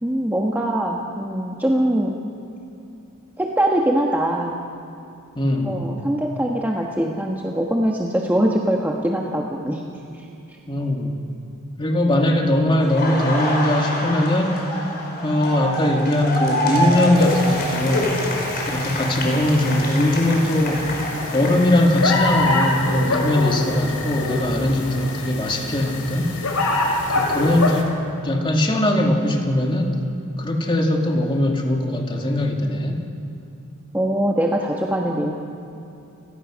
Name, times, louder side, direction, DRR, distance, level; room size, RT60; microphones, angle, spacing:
voice 1, 0.0-2.2 3.4-4.6 5.6-9.8 10.1-10.2 33.9-35.3, right 1 dB, 10° right, -1 dB, 1.3 m, -22 dB
voice 2, 5.4-5.8 10.7-11.2 11.8-14.6 15.2-18.2 18.7-20.9 21.3-26.3 27.1-27.9 28.2-30.0 30.4-33.0, left 1 dB, 20° left, 2 dB, 2.3 m, -20 dB
Laughter, 12.8-22.6 22.9-25.0, equal, 45° left, 5.0 m, -27 dB
sound 1, 17.2-27.8, left 2 dB, 80° left, 3.6 m, -25 dB
29.5 x 18.0 x 6.4 m, 2.8 s
head